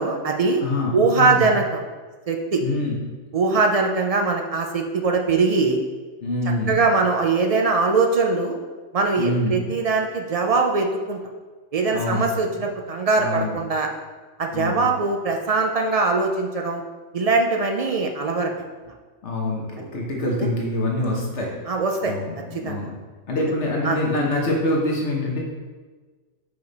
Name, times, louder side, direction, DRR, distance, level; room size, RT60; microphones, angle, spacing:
voice 1, 0.0-0.6 0.9-1.8 2.3-2.6 3.3-5.8 6.7-8.6 8.9-11.2 11.7-13.9 14.4-16.8 17.1-18.5 21.7-22.1 22.5-22.9 23.8-24.0, right 4 dB, 60° right, 3 dB, 0.4 m, -21 dB
voice 2, 0.6-1.4 2.6-3.0 6.2-6.8 9.2-9.7 11.9-12.3 13.2-13.6 14.5-14.8 19.2-21.5 22.1-22.9 23.3-25.4, left 1 dB, 70° left, -2 dB, 1.3 m, -25 dB
5.1 x 4.9 x 3.9 m, 1.4 s
omnidirectional pair, 1.3 m